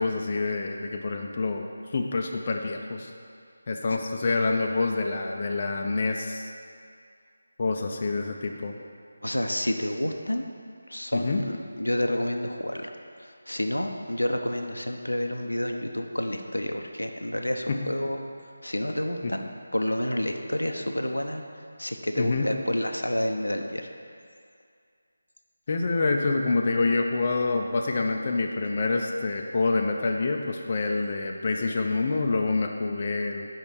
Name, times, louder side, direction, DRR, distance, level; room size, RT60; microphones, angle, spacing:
voice 1, 0.0-1.7 1.9-3.1 3.7-6.5 7.6-8.8 11.1-11.4 17.7-17.8 19.2-19.3 22.2-22.5 25.7-33.5, left 3 dB, 40° left, 2 dB, 0.5 m, -27 dB
voice 2, 9.2-10.4 10.9-12.9 13.2-18.2 18.6-21.4 21.8-23.9, left 1 dB, 90° left, 4 dB, 0.7 m, -29 dB
5.5 x 5.2 x 6.2 m, 2.3 s
figure-of-eight pair, 160°, 0 cm